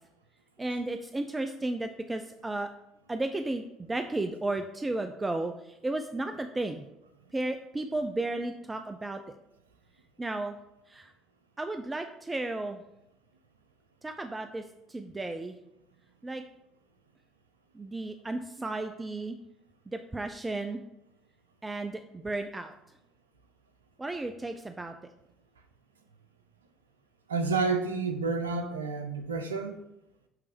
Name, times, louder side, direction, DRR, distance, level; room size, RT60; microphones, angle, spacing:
voice 1, 0.6-2.7 3.1-6.9 7.3-9.2 10.2-10.6 10.9-11.1 11.6-12.8 14.0-14.6 14.9-15.6 16.2-16.4 17.7-19.4 19.9-20.8 21.6-22.7 24.0-24.9, right 2 dB, 20° right, 0.6 m, -33 dB
voice 2, 27.3-29.8, right 4 dB, 90° right, 0.7 m, -30 dB
9.4 x 3.4 x 5.1 m
hypercardioid pair, 60°, 0 cm